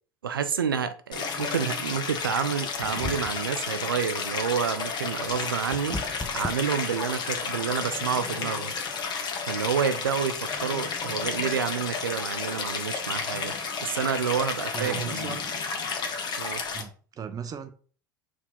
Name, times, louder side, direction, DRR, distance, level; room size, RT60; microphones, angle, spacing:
voice 1, 0.2-6.0 6.3-8.7 9.4-13.5 13.8-15.4 16.4-16.6, right 7 dB, 90° right, 0.5 m, -29 dB
Stream, 1.1-16.8, left 5 dB, 40° left, 1.0 m, -32 dB
sound 1, 2.8-3.6 5.1-7.4, left 2 dB, 10° left, 0.6 m, -36 dB
voice 2, 14.7-15.5 16.7-17.7, right 7 dB, 35° right, 0.6 m, -37 dB
4.6 x 2.8 x 4.0 m
hypercardioid pair, 80°, 11 cm